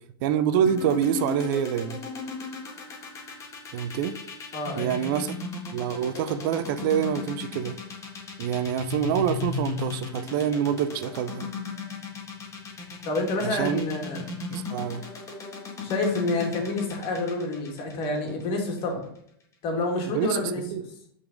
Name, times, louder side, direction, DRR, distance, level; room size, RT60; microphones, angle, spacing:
voice 1, 0.2-2.0 3.7-4.1 4.8-5.3 5.7-7.7 8.4-11.5 13.4-13.8 14.5-15.0 20.1-20.4 20.7-20.8, right 9 dB, 60° right, 11 dB, 0.6 m, -26 dB
sound 1, 0.7-18.8, left 5 dB, 25° left, 1.6 m, -35 dB
voice 2, 4.5-5.1 13.1-14.3 15.8-19.1 19.6-20.8, left 2 dB, 45° left, 2 dB, 2.1 m, -28 dB
5.6 x 4.1 x 5.1 m, 0.68 s
hypercardioid pair, 110°, 12 cm